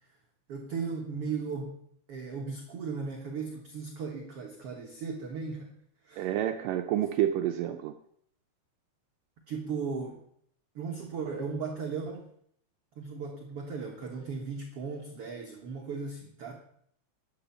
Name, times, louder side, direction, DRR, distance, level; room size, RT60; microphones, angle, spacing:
voice 1, 0.5-1.8 2.1-5.7 6.1-6.3 9.5-10.2 10.7-12.3 13.0-16.5, right 5 dB, 55° right, 2 dB, 1.7 m, -36 dB
voice 2, 6.2-7.9, right 11 dB, 75° right, 6 dB, 2.2 m, -29 dB
12.0 x 7.5 x 7.1 m, 0.68 s
omnidirectional pair, 4.2 m